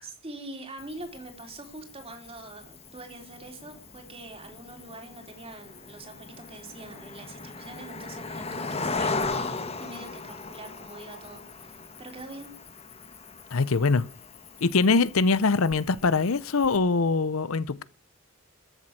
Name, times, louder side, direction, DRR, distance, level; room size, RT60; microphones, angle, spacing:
voice 1, 0.0-9.2 9.8-12.5, right 2 dB, 25° right, 3.6 m, -44 dB
Cricket, 0.8-16.8, left 3 dB, 30° left, 1.3 m, -38 dB
voice 2, 13.5-14.1 14.6-17.8, left 4 dB, 75° left, 0.7 m, -23 dB
14.0 x 7.6 x 8.8 m
head